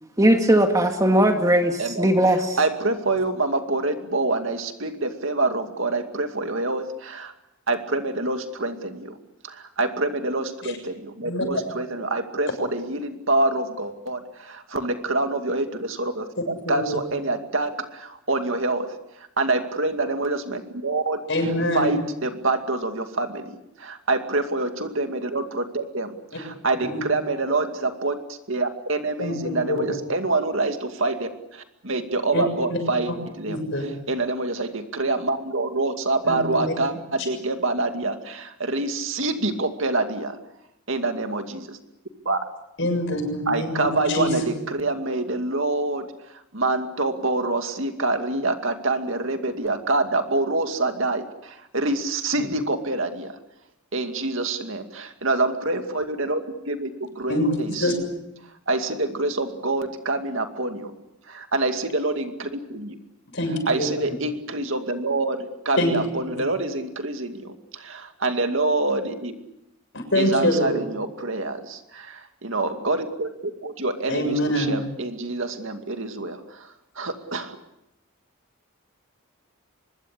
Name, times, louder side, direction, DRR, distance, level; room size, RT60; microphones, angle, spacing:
voice 1, 0.2-2.6, right 1 dB, 15° right, 4 dB, 2.0 m, -19 dB
voice 2, 1.8-7.3 7.7-9.2 9.4-18.9 19.2-23.5 23.8-40.4 40.9-41.8 42.3-42.4 43.5-46.1 46.5-53.3 53.9-58.0 58.7-60.9 61.3-62.9 63.4-67.6 67.9-69.3 70.1-72.1 72.4-73.3 73.6-76.4 77.0-77.6, right 2 dB, 65° right, 6 dB, 2.4 m, -26 dB
voice 3, 16.6-17.0 21.3-21.9 26.9-27.0 29.2-29.8 32.3-32.8 33.1-33.2 33.5-33.8 36.2-36.7 42.8-44.6 57.3-57.5 57.8-57.9 63.3-63.9 65.8-65.9 69.9-70.8 74.1-74.8, left 1 dB, 55° left, 6 dB, 7.0 m, -25 dB
24.5 x 22.0 x 8.3 m, 0.86 s
head